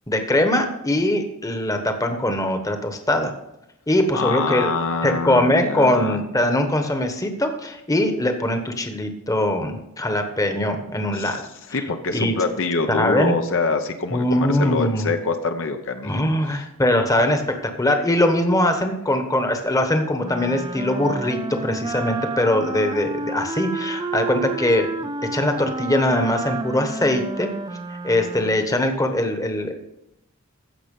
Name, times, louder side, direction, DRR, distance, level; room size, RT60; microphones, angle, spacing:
voice 1, 0.1-3.3 3.9-4.7 5.0-11.4 11.7-11.8 12.1-12.3 12.9-13.4 14.1-15.1 16.0-24.9 25.3-27.5 28.0-29.7, left 1 dB, 15° left, 6 dB, 1.1 m, -21 dB
voice 2, 4.1-6.2 11.1-11.4 11.7-16.1 16.5-16.6, left 3 dB, 60° left, 6 dB, 0.8 m, -25 dB
Wind instrument woodwind instrument, 20.2-28.7, right 3 dB, 20° right, 0.5 m, -30 dB
15.5 x 5.6 x 5.4 m, 0.87 s
head